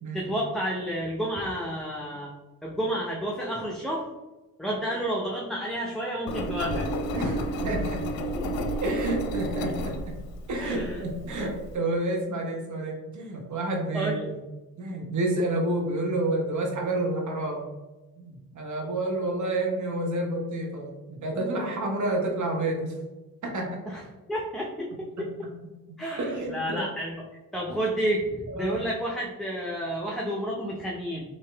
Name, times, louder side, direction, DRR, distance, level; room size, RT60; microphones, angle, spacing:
voice 1, 0.1-2.3 2.6-4.1 4.6-6.9 8.3-8.7 10.6-11.0 13.9-14.3 23.9-24.0 24.3-25.5 26.0-27.2 27.5-31.2, equal, ahead, -3 dB, 0.7 m, -30 dB
Engine, 6.3-11.7, right 1 dB, 65° left, 0.6 m, -31 dB
voice 2, 7.1-8.1 8.8-10.2 10.5-14.4 14.8-17.6 18.2-22.9 23.4-23.8 24.9-25.5 25.9-26.9 27.7-27.8 28.5-28.8, right 2 dB, 45° right, 0 dB, 1.2 m, -30 dB
3.0 x 2.8 x 3.3 m, 1.1 s
supercardioid pair, 50°, 40 cm